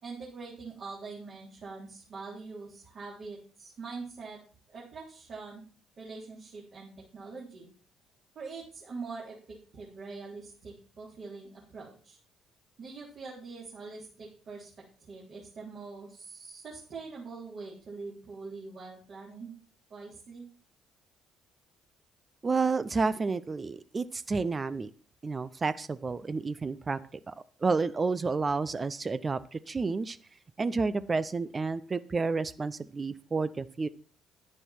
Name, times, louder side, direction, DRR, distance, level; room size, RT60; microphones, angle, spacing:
voice 1, 0.0-4.4 4.7-5.6 6.0-7.7 8.4-12.2 12.8-14.7 15.0-19.5 19.9-20.5, right 4 dB, 50° right, -5 dB, 3.8 m, -43 dB
voice 2, 22.4-24.9 25.2-27.0 27.3-27.4 27.6-30.2 30.6-33.9, right 4 dB, 30° right, 14 dB, 0.6 m, -30 dB
11.0 x 9.8 x 4.5 m, 0.41 s
figure-of-eight pair, 45°, 0 cm